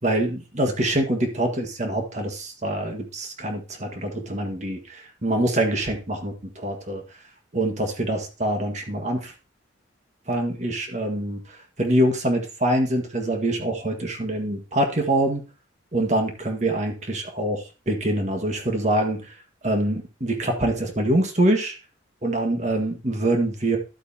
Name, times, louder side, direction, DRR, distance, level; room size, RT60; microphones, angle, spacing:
voice 1, 0.0-7.0 7.5-9.3 10.3-15.4 15.9-19.4 19.6-21.7 22.2-23.8, right 1 dB, 35° right, 4 dB, 1.6 m, -25 dB
12.0 x 8.1 x 2.8 m, 0.33 s
head